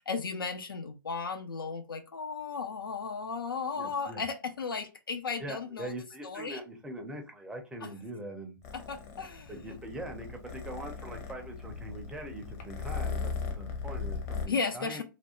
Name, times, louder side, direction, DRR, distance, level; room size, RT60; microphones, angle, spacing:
voice 1, 0.0-6.0 6.2-6.6 7.8-7.9 8.7-9.8 14.5-15.0, left 5 dB, 80° left, 0.4 m, -35 dB
voice 2, 3.7-4.2 5.4-8.6 9.5-15.0, right 1 dB, 5° right, 0.5 m, -42 dB
Purr, 8.6-14.5, left 5 dB, 45° left, 0.7 m, -38 dB
2.5 x 2.1 x 2.8 m
figure-of-eight pair, 120°, 11 cm